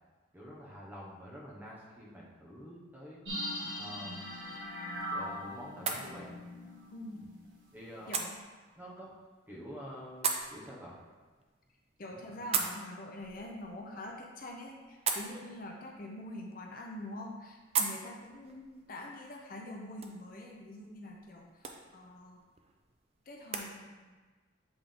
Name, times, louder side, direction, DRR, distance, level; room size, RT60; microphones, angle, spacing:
voice 1, 0.3-3.2 3.8-4.3 5.1-6.4 7.7-8.2 8.8-9.2 9.5-11.0 12.1-12.6, equal, 10° right, -6 dB, 1.0 m, -48 dB
sound 1, 3.3-7.7 8.0-8.1, equal, 70° right, 1.4 m, -40 dB
sound 2, 4.2-23.7, right 5 dB, 30° right, 0.4 m, -41 dB
voice 2, 6.9-7.3 8.1-8.4 12.0-22.4 23.3-24.1, left 1 dB, 45° left, 0 dB, 0.6 m, -45 dB
7.9 x 3.5 x 3.6 m, 1.3 s
head